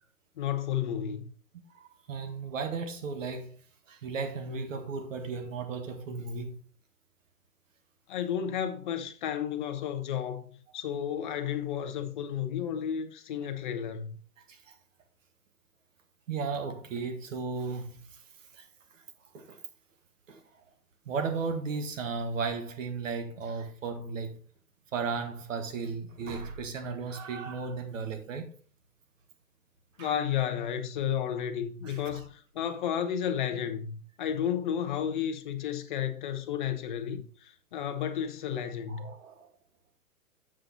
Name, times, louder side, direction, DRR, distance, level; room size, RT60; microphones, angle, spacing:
voice 1, 0.4-1.3 8.1-10.5 10.7-14.2 30.0-39.1, left 9 dB, 35° left, 0.9 m, -32 dB
voice 2, 1.7-3.6 3.9-6.6 14.5-14.7 16.3-18.0 18.5-18.6 19.3-19.6 20.3-20.4 21.0-24.4 24.9-28.5 30.0-30.1 31.8-32.2 39.0-39.5, right 4 dB, 55° right, 1.7 m, -35 dB
7.8 x 5.4 x 4.0 m
hypercardioid pair, 155°, 45 cm